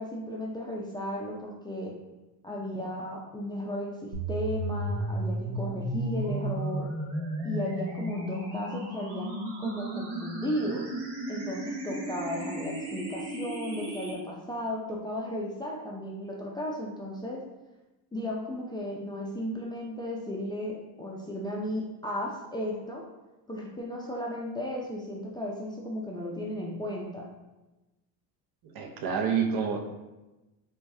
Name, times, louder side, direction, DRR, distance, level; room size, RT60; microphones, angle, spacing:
voice 1, 0.0-1.9 2.4-6.9 7.4-10.8 11.3-17.4 18.1-23.0 23.5-27.2, equal, 10° left, -3 dB, 0.4 m, -35 dB
sound 1, 4.1-14.1, right 1 dB, 90° right, 1.1 m, -34 dB
voice 2, 28.6-29.8, right 6 dB, 55° right, 4 dB, 0.6 m, -28 dB
4.5 x 2.3 x 2.7 m, 1.0 s
supercardioid pair, 100°, 45 cm